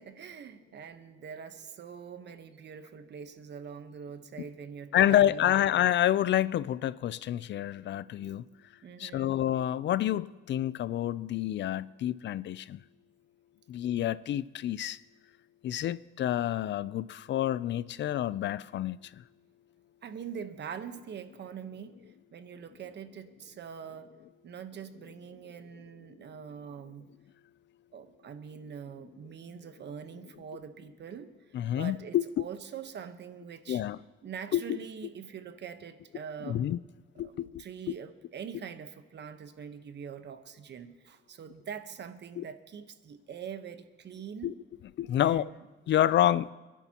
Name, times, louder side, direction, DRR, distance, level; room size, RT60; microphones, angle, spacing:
voice 1, 0.0-5.6 8.8-9.4 20.0-21.9 22.3-24.1 24.4-27.1 27.9-33.8 34.2-36.6 37.2-44.5 45.2-45.6, right 7 dB, 60° right, 1.1 m, -44 dB
voice 2, 4.9-8.5 9.0-12.8 13.7-15.0 15.6-19.0 31.5-32.4 33.7-34.0 34.5-34.6 36.5-36.8 37.2-37.6 42.4-42.5 44.4-44.5 45.0-45.5 45.9-46.5, left 12 dB, 65° left, 0.4 m, -28 dB
27.5 x 11.0 x 2.9 m
cardioid pair, 85°, 20 cm